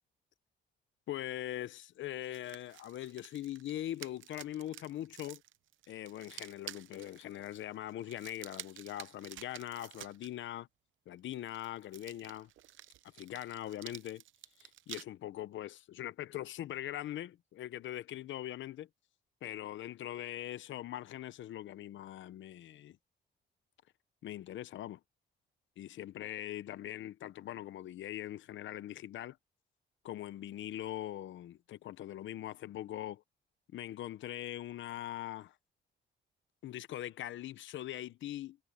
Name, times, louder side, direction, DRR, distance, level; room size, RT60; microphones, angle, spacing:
voice 1, 1.1-5.4 5.9-10.7 11.1-12.5 13.2-14.2 14.6-18.9 19.4-23.0 24.2-25.0 25.8-29.4 30.0-33.2 33.7-35.5 36.6-38.6, left 13 dB, 70° left, 0.9 m, -42 dB
sound 1, 2.2-10.3 11.3-15.0, right 13 dB, 75° right, 0.8 m, -51 dB
cardioid pair, 90°, 20 cm